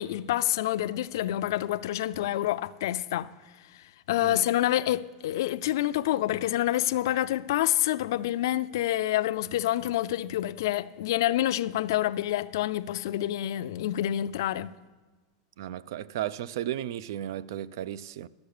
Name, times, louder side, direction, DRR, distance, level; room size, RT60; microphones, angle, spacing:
voice 1, 0.0-3.3 4.1-14.7, left 13 dB, 75° left, 0.4 m, -27 dB
voice 2, 15.6-18.3, right 11 dB, 70° right, 0.4 m, -34 dB
11.5 x 7.8 x 6.6 m
supercardioid pair, 165°, 2 cm